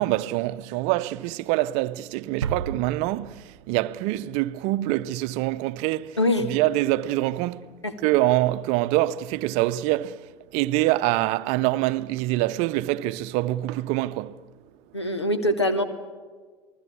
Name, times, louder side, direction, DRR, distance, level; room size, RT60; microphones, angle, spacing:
voice 1, 0.0-6.2 6.4-7.7 8.0-14.4, right 16 dB, 55° right, 0.7 m, -25 dB
sound 1, 2.4-4.3, right 6 dB, 80° right, 0.8 m, -34 dB
voice 2, 6.2-6.5 7.8-7.9 14.9-15.8, left 1 dB, 85° left, 1.6 m, -23 dB
28.5 x 20.0 x 7.1 m
figure-of-eight pair, 65°, 14 cm